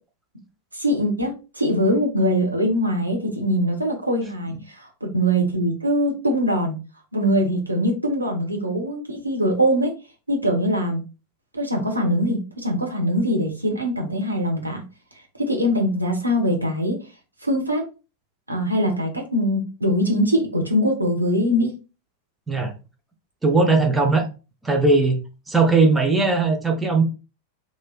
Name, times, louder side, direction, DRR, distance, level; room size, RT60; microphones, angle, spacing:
voice 1, 0.7-6.8 7.1-9.9 10.3-11.0 11.5-14.8 15.4-17.0 17.4-17.8 18.5-21.7, equal, 85° right, 1 dB, 0.8 m, -22 dB
voice 2, 23.4-24.3 24.6-25.2 25.5-27.0, right 3 dB, 10° right, 3 dB, 0.6 m, -18 dB
3.1 x 2.6 x 2.4 m, 0.31 s
figure-of-eight pair, 90°, 0 cm